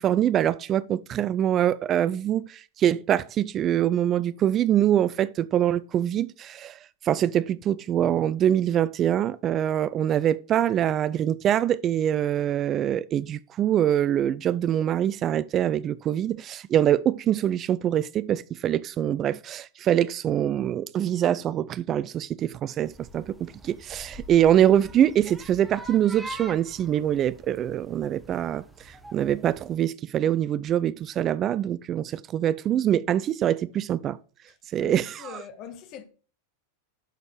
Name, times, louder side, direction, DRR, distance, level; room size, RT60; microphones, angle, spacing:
voice 1, 0.0-6.8 7.0-34.2 34.7-35.4, right 10 dB, 30° right, 0.3 m, -24 dB
sound 1, 22.8-29.8, right 1 dB, 10° right, 1.2 m, -45 dB
voice 2, 34.8-36.0, left 8 dB, 40° left, 1.3 m, -42 dB
11.5 x 4.4 x 4.9 m
figure-of-eight pair, 90°, 0 cm